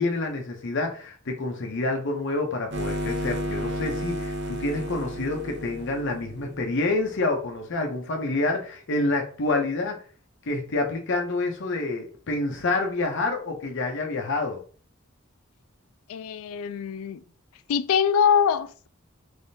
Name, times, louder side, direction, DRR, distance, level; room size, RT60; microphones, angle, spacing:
voice 1, 0.0-10.0 10.4-14.6, left 2 dB, 60° left, 0.7 m, -28 dB
sound 1, 2.7-7.1, right 1 dB, 55° right, 0.7 m, -32 dB
voice 2, 16.1-17.2 17.7-18.9, left 7 dB, 90° left, 0.3 m, -23 dB
3.5 x 3.2 x 2.7 m
head